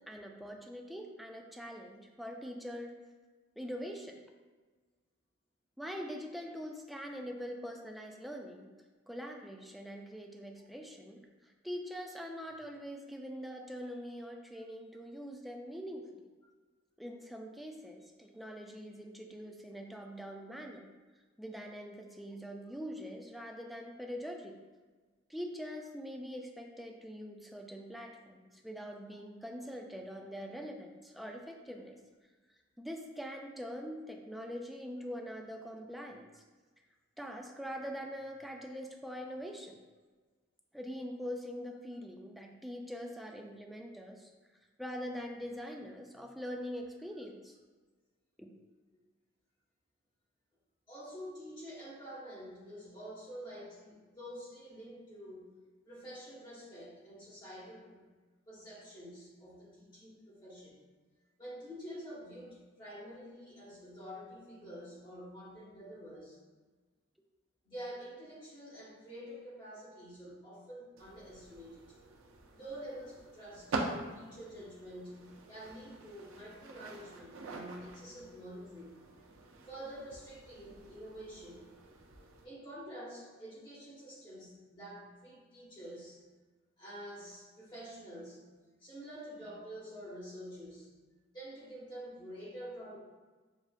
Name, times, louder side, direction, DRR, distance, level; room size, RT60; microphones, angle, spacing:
voice 1, 0.1-3.0 3.6-4.2 5.8-8.7 9.1-16.2 17.0-20.9 21.4-24.5 25.3-32.0 32.8-36.4 37.2-39.8 40.7-44.3 44.8-47.6 48.4-48.5, equal, ahead, 1 dB, 0.3 m, -43 dB
voice 2, 50.9-55.4 55.8-58.0 58.5-60.8 61.4-66.4 67.6-71.8 72.5-79.0 79.7-81.7 82.4-86.2 86.8-88.4 88.8-90.9 91.3-93.0, equal, 25° left, -9 dB, 1.2 m, -48 dB
sound 1, 71.0-82.4, right 3 dB, 75° right, 0.5 m, -45 dB
6.4 x 2.3 x 2.4 m, 1.3 s
head